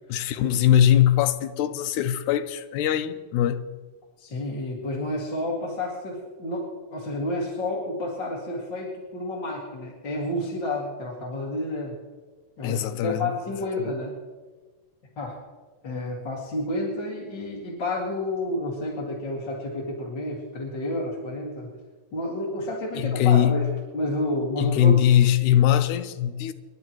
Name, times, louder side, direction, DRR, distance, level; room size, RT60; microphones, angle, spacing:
voice 1, 0.1-3.7 12.6-13.3 13.8-13.9 23.0-23.7 24.6-26.5, left 10 dB, 75° left, 1.9 m, -21 dB
voice 2, 4.2-11.9 12.6-12.8 13.0-14.1 15.2-15.4 15.8-21.7 22.1-23.7 23.9-25.0, left 1 dB, 35° left, 2.4 m, -30 dB
28.0 x 11.5 x 3.1 m
omnidirectional pair, 4.1 m